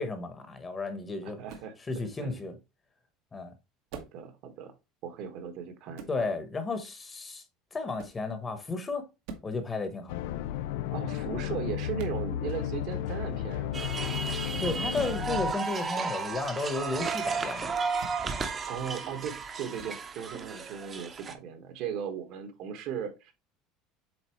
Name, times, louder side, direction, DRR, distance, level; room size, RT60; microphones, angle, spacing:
voice 1, 0.0-1.4 1.9-2.5 3.3-3.5 6.1-7.4 7.7-9.1 9.4-10.2 14.5-17.7, left 3 dB, 20° left, 1.1 m, -33 dB
voice 2, 1.2-1.7 2.2-2.5 3.9-4.7 5.0-6.3 10.9-14.0 18.4-23.3, right 8 dB, 60° right, 1.5 m, -37 dB
sound 1, 1.5-1.7 3.9-4.2 5.9-6.2 8.0-8.2 9.2-9.5 12.0-12.2 14.9-15.2 17.9-18.2 19.8-20.0, right 5 dB, 75° right, 1.5 m, -44 dB
sound 2, 10.1-15.5, left 11 dB, 80° left, 0.4 m, -33 dB
sound 3, 13.7-21.3, right 5 dB, 25° right, 0.9 m, -34 dB
7.8 x 4.1 x 3.1 m
cardioid pair, 150°, 0 cm